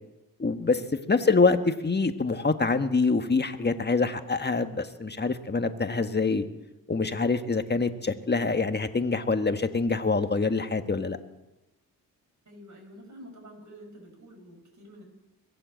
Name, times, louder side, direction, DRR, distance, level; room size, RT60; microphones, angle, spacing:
voice 1, 0.4-0.8 1.1-6.4 6.9-11.2, left 4 dB, 25° left, 9 dB, 1.5 m, -25 dB
voice 2, 12.4-15.0, equal, 50° right, 1 dB, 6.7 m, -48 dB
23.0 x 8.0 x 7.7 m, 0.99 s
supercardioid pair, 55°, 37 cm